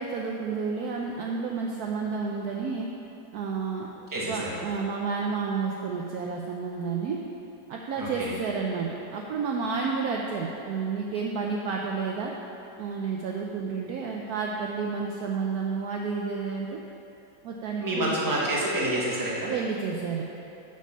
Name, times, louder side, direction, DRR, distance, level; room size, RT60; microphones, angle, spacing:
voice 1, 0.0-2.9 3.3-7.2 7.7-12.3 12.8-16.8 17.4-18.1 19.5-20.2, right 5 dB, 70° right, -1 dB, 0.9 m, -30 dB
voice 2, 4.1-4.6 8.0-8.3 17.8-19.5, right 1 dB, 10° right, -6 dB, 1.1 m, -28 dB
6.7 x 6.4 x 5.5 m, 2.9 s
omnidirectional pair, 2.1 m